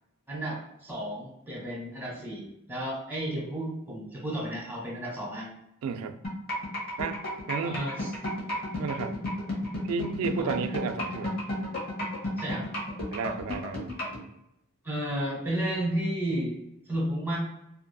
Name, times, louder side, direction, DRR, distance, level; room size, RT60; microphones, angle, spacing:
voice 1, 0.3-5.5 7.6-8.1 10.4-10.6 12.4-12.7 14.8-16.6 16.9-17.4, right 1 dB, 10° right, -4 dB, 1.1 m, -32 dB
voice 2, 5.8-6.2 7.0-7.2 7.5-7.8 8.8-9.2 9.8-11.4 13.1-13.9, right 5 dB, 70° right, 8 dB, 0.3 m, -32 dB
sound 1, 6.2-14.2, left 1 dB, 45° left, 0.9 m, -32 dB
2.6 x 2.6 x 2.2 m, 0.80 s
head